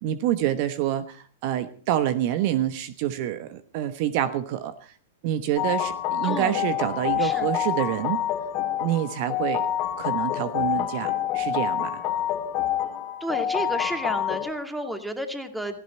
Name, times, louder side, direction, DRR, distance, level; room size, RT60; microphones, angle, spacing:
voice 1, 0.0-4.9 5.2-8.2 8.8-9.7 10.0-12.0, right 12 dB, 50° right, 12 dB, 1.1 m, -27 dB
sound 1, 5.6-14.5, left 11 dB, 40° left, 2.5 m, -27 dB
voice 2, 6.2-6.6 7.2-7.5 13.2-15.8, equal, 5° right, 6 dB, 2.3 m, -31 dB
17.5 x 15.0 x 4.4 m, 0.43 s
hypercardioid pair, 110°, 0 cm